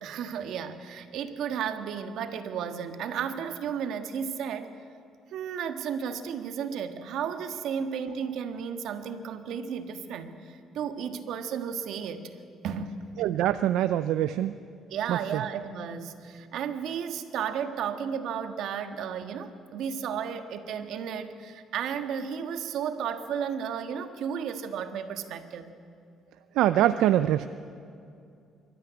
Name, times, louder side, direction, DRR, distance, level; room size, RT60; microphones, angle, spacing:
voice 1, 0.0-4.7 5.3-12.3 12.6-13.0 14.9-25.7, right 7 dB, 70° right, 8 dB, 1.6 m, -33 dB
voice 2, 13.2-14.5 15.1-15.4 26.6-27.5, right 12 dB, 90° right, 11 dB, 0.5 m, -24 dB
24.0 x 13.5 x 9.6 m, 2.5 s
cardioid pair, 140°, 0 cm